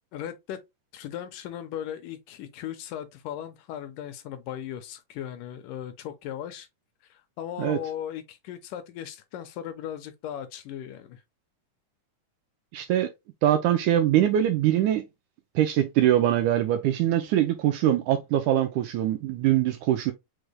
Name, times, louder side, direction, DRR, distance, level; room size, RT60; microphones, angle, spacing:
voice 1, 0.1-0.6 0.9-6.7 7.1-11.2, left 10 dB, 80° left, 2.2 m, -37 dB
voice 2, 12.7-13.1 13.4-15.0 15.6-20.1, right 12 dB, 80° right, 1.8 m, -23 dB
6.1 x 3.2 x 2.3 m
omnidirectional pair, 3.9 m